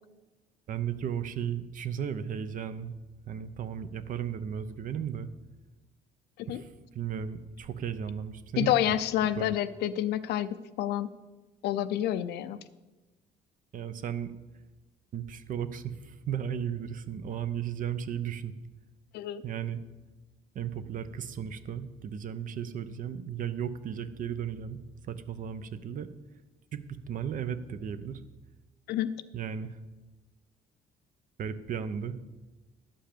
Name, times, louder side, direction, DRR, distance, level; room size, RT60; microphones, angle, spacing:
voice 1, 0.7-2.9 3.3-5.3 6.5-9.0 9.4-9.5 13.7-14.3 15.1-18.5 19.4-19.8 20.5-24.8 25.0-26.1 26.7-26.8 27.1-28.2 29.3-29.8 31.4-32.2, right 8 dB, 50° right, 12 dB, 0.8 m, -35 dB
voice 2, 8.6-10.5 10.8-11.1 11.6-12.6 19.1-19.4 28.9-29.1, left 12 dB, 75° left, 13 dB, 0.6 m, -28 dB
11.5 x 5.6 x 6.8 m, 1.1 s
cardioid pair, 110°, 17 cm